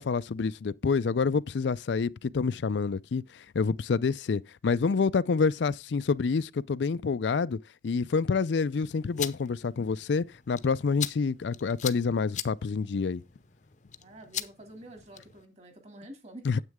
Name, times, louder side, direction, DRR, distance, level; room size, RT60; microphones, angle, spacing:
voice 1, 0.0-7.6 7.8-13.2 16.5-16.6, left 5 dB, 75° left, 0.4 m, -27 dB
sound 1, 8.9-15.5, left 10 dB, 40° left, 0.7 m, -41 dB
voice 2, 14.0-16.6, right 1 dB, 35° right, 2.6 m, -48 dB
9.5 x 8.2 x 3.6 m
head